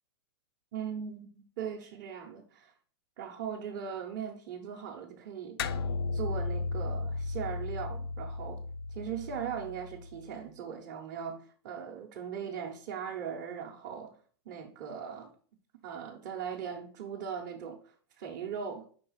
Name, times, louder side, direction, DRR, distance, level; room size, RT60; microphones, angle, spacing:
voice 1, 0.7-2.7 3.2-5.6 6.1-8.6 8.9-14.2 14.4-15.3 15.8-18.9, right 7 dB, 30° right, 0.9 m, -39 dB
sound 1, 5.6-10.3, left 3 dB, 70° left, 0.6 m, -35 dB
5.3 x 3.9 x 5.5 m
supercardioid pair, 175°, 13 cm